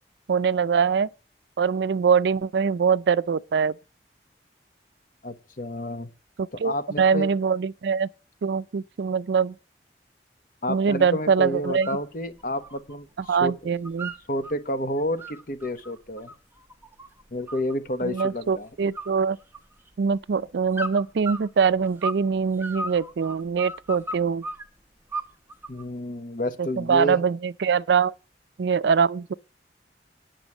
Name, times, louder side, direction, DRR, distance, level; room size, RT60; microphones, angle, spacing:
voice 1, 0.3-1.1 1.6-3.7 6.4-8.1 8.4-9.5 10.7-11.9 13.3-14.1 18.0-19.4 20.0-24.4 26.6-28.1 28.6-29.3, right 6 dB, 75° right, 0.4 m, -23 dB
voice 2, 5.2-6.1 6.5-7.3 10.6-13.7 14.3-16.3 17.3-18.7 25.7-27.2, equal, 50° left, 1.2 m, -30 dB
sound 1, 11.6-12.1 12.4-13.3 13.6-14.5 15.0-17.7 18.2-18.6 18.9-19.9 20.7-22.3 22.6-24.6 25.1-25.8, right 1 dB, 10° right, 1.0 m, -35 dB
9.9 x 6.1 x 7.2 m
head